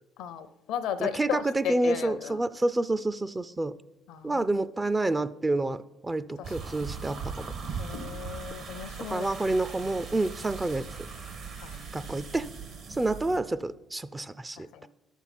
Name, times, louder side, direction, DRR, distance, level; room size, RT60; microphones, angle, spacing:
voice 1, 0.2-2.4 4.1-4.5 4.8-4.9 6.4-6.8 7.8-9.3 11.6-12.1 14.6-14.9, left 9 dB, 80° left, 0.6 m, -36 dB
voice 2, 1.0-3.7 4.2-7.5 9.1-10.9 11.9-12.5 12.9-14.9, right 2 dB, 20° right, 0.4 m, -28 dB
sound 1, 6.4-13.4, right 5 dB, 65° right, 1.5 m, -39 dB
11.0 x 7.2 x 4.2 m
supercardioid pair, 65°, 0 cm